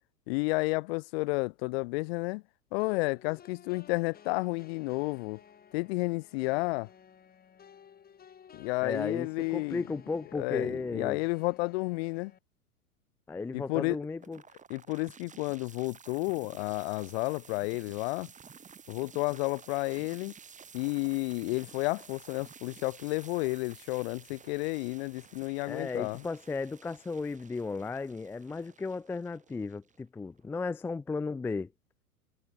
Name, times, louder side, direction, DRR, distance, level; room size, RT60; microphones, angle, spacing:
voice 1, 0.3-2.4 2.7-5.4 5.7-6.9 8.5-9.8 10.3-12.3 13.5-14.0 14.7-18.3 18.9-20.3 20.7-26.2, left 26 dB, 45° left, 1.4 m, -31 dB
sound 1, 2.8-12.4, left 8 dB, 20° left, 7.0 m, -56 dB
voice 2, 8.8-11.2 13.3-14.4 25.7-31.7, left 4 dB, 5° left, 0.5 m, -35 dB
sound 2, 14.2-30.2, right 6 dB, 15° right, 6.3 m, -53 dB
figure-of-eight pair, 105°, 44 cm